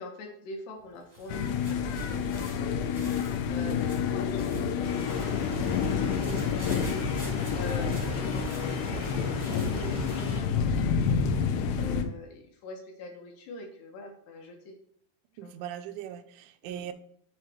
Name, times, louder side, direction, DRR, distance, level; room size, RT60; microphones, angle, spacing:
voice 1, 0.0-2.9 3.5-5.6 6.2-7.1 7.5-11.3 11.8-14.8 15.4-15.6 16.6-16.9, left 2 dB, 75° left, 1 dB, 2.7 m, -44 dB
sound 1, 0.8-10.3, right 1 dB, 40° right, 0.8 m, -51 dB
sound 2, 1.3-12.0, left 6 dB, 90° left, 3.2 m, -29 dB
Stream, 4.8-10.4, left 2 dB, 45° left, 1.2 m, -43 dB
voice 2, 15.4-16.9, right 10 dB, 85° right, 9 dB, 2.9 m, -40 dB
8.1 x 3.2 x 5.7 m, 0.65 s
omnidirectional pair, 5.3 m